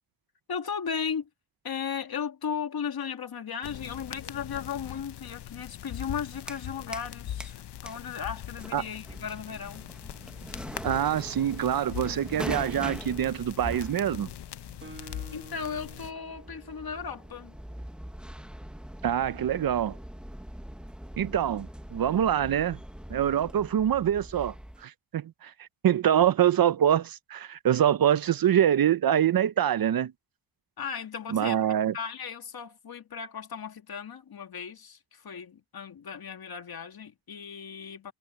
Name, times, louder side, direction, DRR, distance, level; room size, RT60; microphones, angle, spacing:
voice 1, 0.5-1.3 1.6-9.9 15.0-17.6 30.8-31.6 31.9-38.1, left 7 dB, 65° left, 2.0 m, -36 dB
sound 1, 3.6-16.1, left 11 dB, 80° left, 0.7 m, -41 dB
sound 2, 6.3-7.1 7.4-24.8, equal, ahead, 1.0 m, -43 dB
voice 2, 10.8-14.3 19.0-20.0 21.2-22.8 23.1-24.5 24.8-30.1 31.3-31.9, right 10 dB, 60° right, 0.6 m, -25 dB
Guitar, 14.8-18.5, right 2 dB, 30° right, 1.5 m, -51 dB
wide cardioid pair, 115°, 40 cm